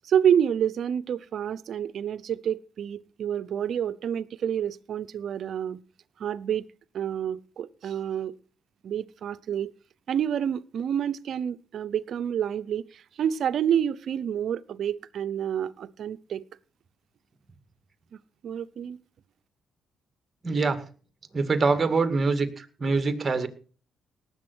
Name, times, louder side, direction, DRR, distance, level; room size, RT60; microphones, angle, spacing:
voice 1, 0.0-5.8 6.2-6.7 6.9-8.4 8.8-9.7 10.1-16.4 18.4-19.0, right 9 dB, 65° right, 0.8 m, -28 dB
voice 2, 20.4-20.8 21.3-23.5, right 4 dB, 30° right, 2.2 m, -24 dB
18.5 x 8.1 x 6.3 m
cardioid pair, 90°, 0 cm